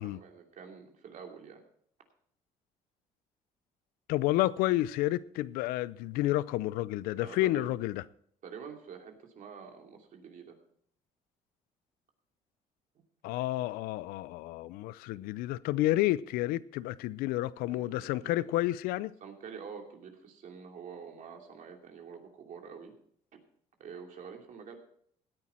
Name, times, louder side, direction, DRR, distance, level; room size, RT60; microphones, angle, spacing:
voice 1, 0.0-1.6 7.2-7.7 8.4-10.6 12.9-13.0 17.7-18.6 19.2-22.9 23.8-24.8, right 6 dB, 60° right, 2.8 m, -47 dB
voice 2, 4.1-8.0 13.2-19.1, left 16 dB, 85° left, 0.5 m, -30 dB
16.5 x 9.7 x 4.4 m
cardioid pair, 85°, 15 cm